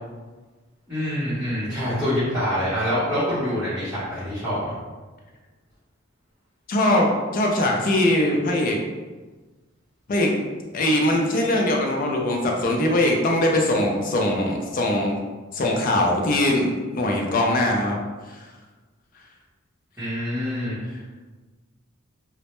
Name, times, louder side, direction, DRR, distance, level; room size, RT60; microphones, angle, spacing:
voice 1, 0.9-4.7 20.0-20.8, equal, 10° right, -15 dB, 0.8 m, -25 dB
voice 2, 6.7-8.8 10.1-10.3 10.7-15.2 15.5-18.0 18.3-18.5, left 1 dB, 45° left, 0 dB, 0.4 m, -21 dB
2.1 x 2.0 x 2.9 m, 1.3 s
head